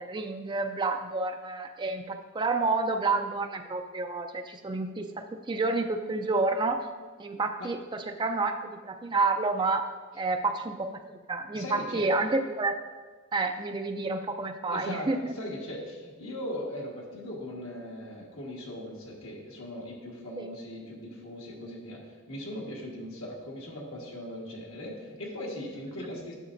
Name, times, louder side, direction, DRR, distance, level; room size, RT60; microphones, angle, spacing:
voice 1, 0.0-6.9 7.2-9.8 10.2-12.8 13.3-15.3 20.4-20.5 26.0-26.1, right 3 dB, 20° right, 6 dB, 0.4 m, -29 dB
voice 2, 11.5-12.1 14.7-26.3, left 1 dB, 70° left, -2 dB, 1.5 m, -39 dB
10.0 x 6.5 x 2.6 m, 1.4 s
head